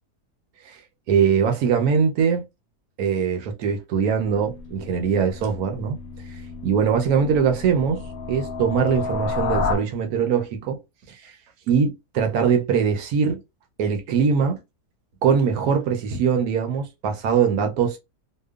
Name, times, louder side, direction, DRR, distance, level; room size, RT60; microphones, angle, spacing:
voice 1, 1.1-2.4 3.0-6.0 6.6-8.0 8.3-10.8 11.1-11.3 11.7-13.4 13.8-14.6 15.2-18.0, right 6 dB, 70° right, 1.0 m, -22 dB
sound 1, 4.2-9.8, left 4 dB, 70° left, 1.0 m, -31 dB
2.8 x 2.2 x 2.3 m
omnidirectional pair, 1.7 m